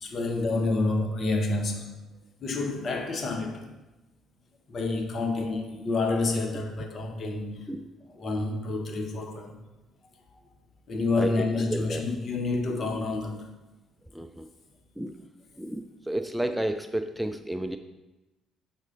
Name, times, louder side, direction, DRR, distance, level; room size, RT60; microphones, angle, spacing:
voice 1, 0.0-1.9 2.4-3.7 4.7-7.6 8.1-9.5 10.9-13.5, left 3 dB, 50° left, 1.1 m, -28 dB
voice 2, 11.7-12.0 14.1-14.5 15.0-15.2 15.6-17.8, right 1 dB, 5° right, 0.4 m, -31 dB
6.3 x 4.2 x 5.3 m
hypercardioid pair, 50°, 0 cm